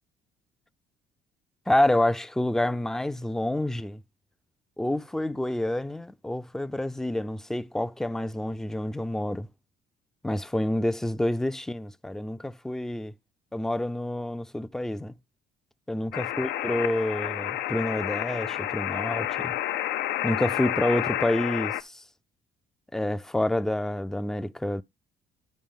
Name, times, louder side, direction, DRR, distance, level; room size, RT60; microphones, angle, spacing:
voice 1, 1.7-4.0 4.8-9.5 10.2-13.1 13.5-15.1 15.9-19.6 20.2-22.0 22.9-24.8, left 1 dB, 5° left, 0.4 m, -28 dB
sound 1, 16.1-21.8, left 13 dB, 80° left, 0.6 m, -30 dB
11.5 x 4.8 x 3.6 m
cardioid pair, 110°, 17 cm